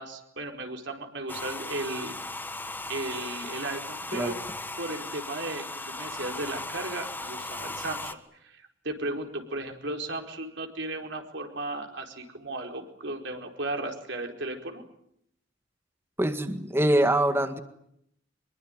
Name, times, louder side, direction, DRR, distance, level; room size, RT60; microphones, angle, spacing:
voice 1, 0.0-2.4 2.9-4.3 4.8-8.2 8.4-14.8, right 2 dB, 65° right, 3 dB, 4.6 m, -35 dB
Domestic sounds home sounds, 1.3-8.1, left 2 dB, 10° left, 1.4 m, -37 dB
voice 2, 16.2-17.6, right 1 dB, 10° right, 8 dB, 1.8 m, -24 dB
25.0 x 22.5 x 9.2 m, 0.75 s
head